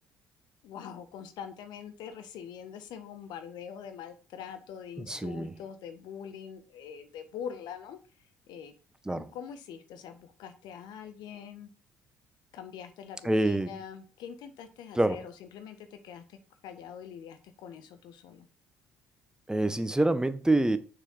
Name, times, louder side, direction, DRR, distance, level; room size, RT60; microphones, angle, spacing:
voice 1, 0.6-8.7 9.1-11.7 12.5-18.5, left 8 dB, 70° left, 1.5 m, -44 dB
voice 2, 5.1-5.5 9.1-9.2 13.2-13.7 14.9-15.2 19.5-20.8, right 2 dB, 10° right, 1.1 m, -26 dB
6.7 x 5.9 x 7.2 m
hypercardioid pair, 60°, 8 cm